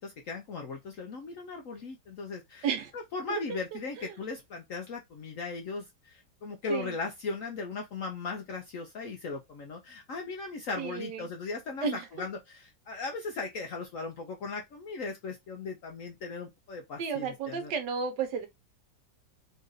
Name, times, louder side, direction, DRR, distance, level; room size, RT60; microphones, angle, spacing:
voice 1, 0.0-2.7 2.9-17.7, left 4 dB, 70° left, 0.8 m, -38 dB
voice 2, 10.8-11.3 11.8-12.1 17.0-18.5, right 6 dB, 70° right, 1.5 m, -32 dB
3.9 x 2.5 x 3.9 m
omnidirectional pair, 2.0 m